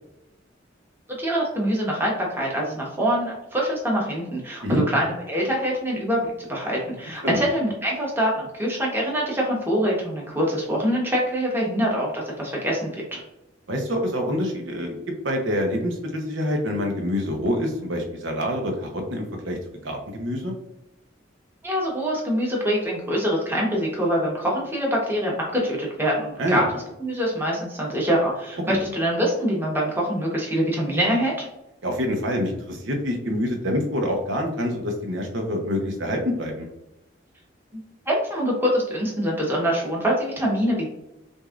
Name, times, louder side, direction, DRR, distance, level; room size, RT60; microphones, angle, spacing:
voice 1, 1.2-13.2 21.6-26.7 27.0-31.5 37.7-40.9, equal, 10° right, -3 dB, 1.1 m, -24 dB
voice 2, 13.7-15.0 15.2-19.6 19.8-20.5 26.4-26.6 28.7-28.8 31.8-36.7, equal, 80° right, 2 dB, 0.9 m, -26 dB
6.2 x 2.7 x 2.5 m, 0.91 s
head